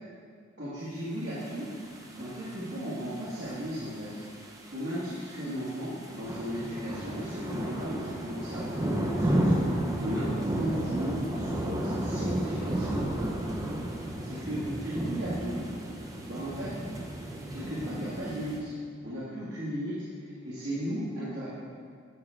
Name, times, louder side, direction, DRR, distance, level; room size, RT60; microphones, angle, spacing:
voice 1, 0.6-1.7 2.1-4.2 4.7-9.5 10.0-13.0 14.2-15.6 16.3-16.7 17.5-18.7 19.0-21.5, equal, 60° right, -9 dB, 1.7 m, -35 dB
sound 1, 1.4-18.6, right 1 dB, 15° right, 0.7 m, -33 dB
10.5 x 6.4 x 3.4 m, 2.1 s
head